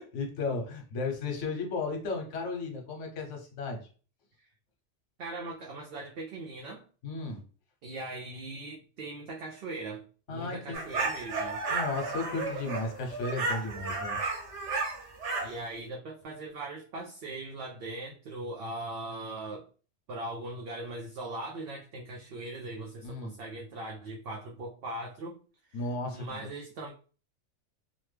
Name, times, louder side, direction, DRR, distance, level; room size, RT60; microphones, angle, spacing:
voice 1, 0.0-3.8 7.0-7.4 10.3-10.8 11.7-14.2 23.0-23.3 25.7-26.5, left 3 dB, 80° left, 3 dB, 1.1 m, -34 dB
voice 2, 5.2-6.8 7.8-11.6 15.4-19.7 20.1-25.4 25.7-25.8 26.1-26.9, right 2 dB, 60° right, 0 dB, 0.7 m, -40 dB
sound 1, 10.7-15.6, right 3 dB, 80° right, 1.3 m, -33 dB
2.9 x 2.2 x 3.2 m, 0.37 s
omnidirectional pair, 1.2 m